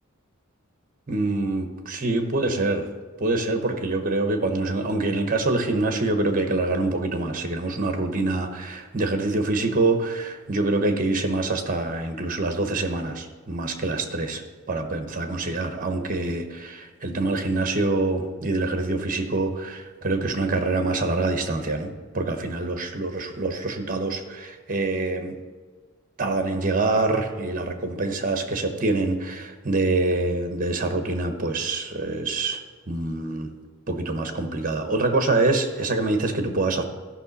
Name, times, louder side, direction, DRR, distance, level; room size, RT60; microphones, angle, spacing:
voice 1, 1.1-2.9 3.2-14.4 14.7-25.4 26.2-32.6 32.9-33.5 33.9-36.8, right 2 dB, 40° right, 6 dB, 1.0 m, -25 dB
13.0 x 5.8 x 4.1 m, 1.5 s
head